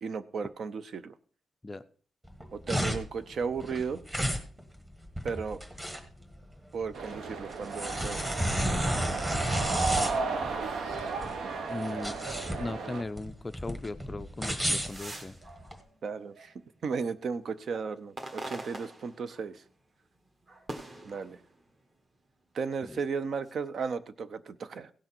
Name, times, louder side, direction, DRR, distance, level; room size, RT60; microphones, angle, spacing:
voice 1, 0.0-1.1 2.5-4.0 5.2-5.6 6.7-8.3 16.0-16.5 16.8-19.6 21.0-21.4 22.5-24.9, right 5 dB, 50° right, 13 dB, 0.6 m, -35 dB
sound 1, 2.2-15.8, equal, 10° right, 1.4 m, -33 dB
sound 2, 6.9-13.0, right 4 dB, 70° right, 1.3 m, -34 dB
voice 2, 9.9-10.2 11.7-12.1 12.6-15.4 22.8-23.0, left 2 dB, 15° left, 11 dB, 0.4 m, -38 dB
sound 3, 14.7-16.9 17.4-19.7 20.1-21.9 22.6-23.5, right 2 dB, 30° right, 1.4 m, -45 dB
16.5 x 6.4 x 4.4 m, 0.42 s
wide cardioid pair, 175°, 0 cm